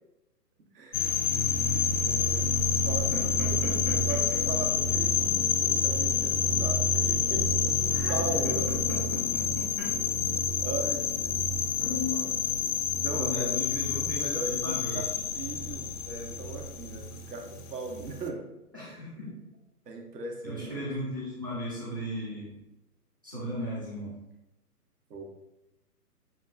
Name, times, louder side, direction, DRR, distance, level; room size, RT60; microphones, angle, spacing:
voice 1, 0.7-2.5 2.8-3.8 4.1-7.7 8.1-8.7 10.6-12.3 13.0-13.5 13.9-15.1 15.3-18.4 18.8-19.3 19.9-20.8 25.1-25.2, right 3 dB, 75° right, 2 dB, 1.0 m, -39 dB
sound 1, 0.9-18.3, left 5 dB, 60° left, 0.5 m, -28 dB
voice 2, 3.1-4.4 7.9-8.1 8.7-9.9 11.8-12.5 13.1-15.2 18.7-19.3 20.4-22.5 23.2-24.1, left 1 dB, 15° right, -7 dB, 0.4 m, -36 dB
6.1 x 2.3 x 2.5 m, 0.93 s
hypercardioid pair, 135°, 48 cm